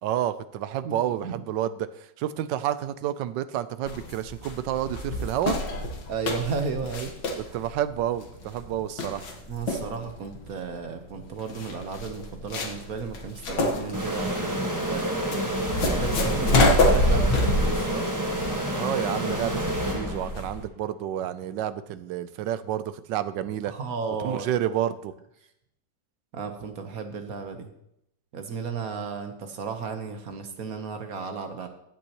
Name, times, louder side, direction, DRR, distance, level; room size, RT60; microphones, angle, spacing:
voice 1, 0.0-5.6 7.4-9.3 18.7-23.7 24.2-25.1, right 11 dB, 85° right, 13 dB, 1.3 m, -30 dB
voice 2, 0.8-1.4 6.1-7.1 7.5-7.6 9.5-14.6 14.9-15.4 16.0-18.1 23.7-24.5 26.3-27.7 28.3-31.7, right 5 dB, 55° right, 6 dB, 1.4 m, -34 dB
sound 1, 3.9-20.6, left 1 dB, 75° left, 2.0 m, -27 dB
sound 2, 13.9-20.6, right 1 dB, 10° right, 1.3 m, -29 dB
14.5 x 8.4 x 3.0 m, 0.79 s
omnidirectional pair, 1.9 m